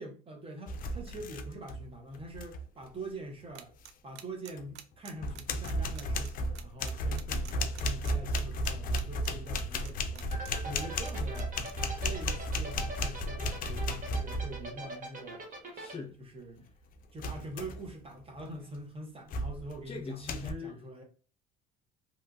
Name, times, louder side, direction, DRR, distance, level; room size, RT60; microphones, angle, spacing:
voice 1, 0.0-3.7 4.0-10.3 10.6-11.5 12.0-15.4 16.2-16.7 17.1-21.0, right 1 dB, 30° right, 0.7 m, -44 dB
sound 1, 0.7-1.9 2.1-2.6 4.6-4.7 5.2-14.7 17.2-17.9 18.4-18.7 19.3-19.8 20.3-20.5, equal, 50° left, 0.4 m, -34 dB
sound 2, 3.6-10.5 10.8-11.7, right 10 dB, 65° right, 0.4 m, -47 dB
sound 3, 10.3-15.9, right 2 dB, 45° right, 1.1 m, -41 dB
voice 2, 15.7-16.2 19.9-20.9, left 4 dB, 30° left, 0.9 m, -41 dB
2.8 x 2.4 x 2.3 m
supercardioid pair, 85°, 19 cm